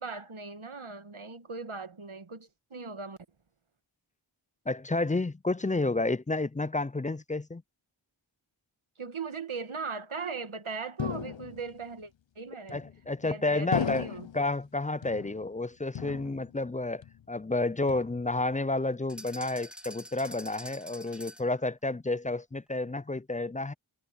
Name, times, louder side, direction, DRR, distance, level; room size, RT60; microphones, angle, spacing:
voice 1, 0.0-3.2 9.0-12.8 13.2-14.3, right 4 dB, 85° right, 1.6 m, -39 dB
voice 2, 4.7-7.6 12.7-14.1 14.3-23.7, left 2 dB, 20° left, 0.3 m, -30 dB
sound 1, 11.0-11.8 12.7-13.2 13.7-14.5 15.0-15.6 15.9-16.7 17.0-17.5 17.9-18.5, left 8 dB, 65° left, 0.6 m, -36 dB
sound 2, 19.1-21.6, equal, ahead, 1.9 m, -46 dB
wide cardioid pair, 45°, 48 cm